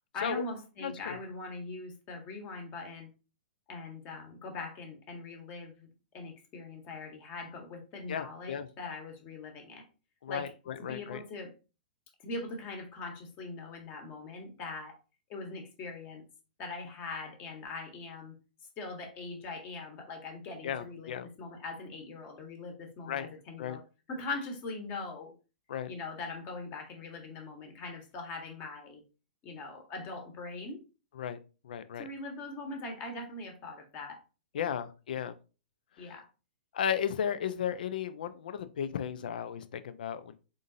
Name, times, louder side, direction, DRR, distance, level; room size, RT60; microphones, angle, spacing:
voice 1, 0.1-3.1 3.7-9.8 10.3-10.5 10.8-11.5 12.2-15.0 15.3-16.2 16.6-18.3 18.8-23.8 24.1-25.3 25.9-29.0 29.4-30.8 32.0-34.2 34.6-34.7 36.0-36.3, left 3 dB, 35° left, 3 dB, 1.4 m, -41 dB
voice 2, 0.8-1.2 8.1-8.7 10.2-11.2 20.6-21.3 23.1-23.3 23.6-23.8 25.7-25.9 31.2-31.4 31.6-32.0 34.5-35.3 36.0-36.1 36.7-40.4, left 8 dB, 65° left, 11 dB, 0.5 m, -35 dB
3.8 x 3.8 x 2.7 m, 0.32 s
figure-of-eight pair, 115°, 5 cm